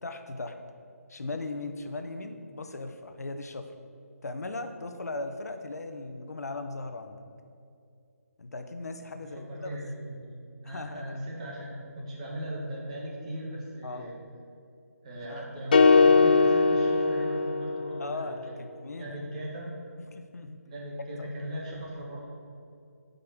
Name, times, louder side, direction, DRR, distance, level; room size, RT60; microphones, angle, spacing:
voice 1, 0.0-0.6 1.1-3.7 4.2-7.2 8.4-9.8 10.6-11.2 13.8-14.1 15.2-15.5 18.0-19.2 20.1-20.6 21.2-21.3, left 2 dB, 75° left, 7 dB, 0.9 m, -38 dB
voice 2, 9.1-14.1 15.0-18.6 19.0-19.7 20.7-22.2, equal, 25° right, -3 dB, 1.7 m, -38 dB
sound 1, 15.7-18.0, left 4 dB, 30° left, 0.4 m, -20 dB
7.7 x 5.4 x 7.4 m, 2.5 s
hypercardioid pair, 170°, 9 cm